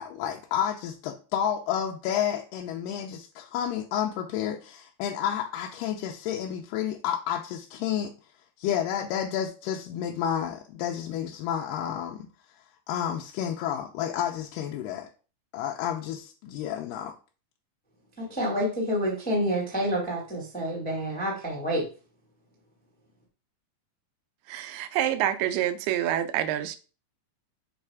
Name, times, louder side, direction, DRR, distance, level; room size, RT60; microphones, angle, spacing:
voice 1, 0.0-8.1 8.6-12.3 12.9-15.1 15.5-17.1, left 9 dB, 80° left, 2.1 m, -30 dB
voice 2, 18.2-21.8, equal, 5° left, 0.7 m, -28 dB
voice 3, 24.5-26.8, right 11 dB, 90° right, 2.6 m, -27 dB
7.6 x 3.2 x 4.7 m
omnidirectional pair, 4.3 m